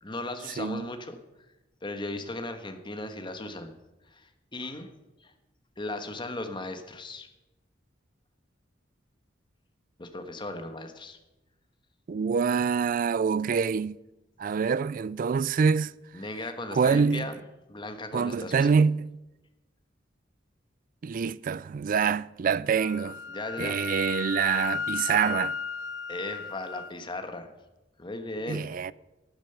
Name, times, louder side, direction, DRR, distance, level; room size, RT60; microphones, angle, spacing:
voice 1, 0.0-1.2 1.8-3.7 4.1-4.9 5.2-5.3 5.8-7.3 10.0-11.2 16.1-17.4 17.7-18.7 23.3-23.8 26.1-27.5 28.0-28.7, left 2 dB, 25° left, 1.3 m, -37 dB
voice 2, 12.1-14.0 14.4-15.9 16.7-17.3 18.1-19.1 21.0-23.2 23.6-25.6 28.5-28.9, right 6 dB, 45° right, 0.3 m, -25 dB
Wind instrument woodwind instrument, 22.8-26.9, left 5 dB, 75° left, 0.7 m, -34 dB
12.5 x 9.1 x 6.8 m
head